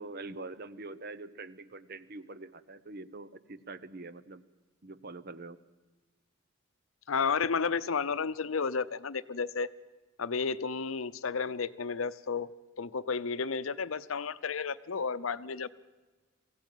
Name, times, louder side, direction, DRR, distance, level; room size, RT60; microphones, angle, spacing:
voice 1, 0.0-4.4 4.8-5.6, right 3 dB, 50° right, 15 dB, 0.9 m, -44 dB
voice 2, 7.1-9.7 10.2-12.5 12.8-15.7, left 5 dB, 80° left, 15 dB, 0.7 m, -32 dB
22.5 x 16.0 x 9.2 m, 1.3 s
head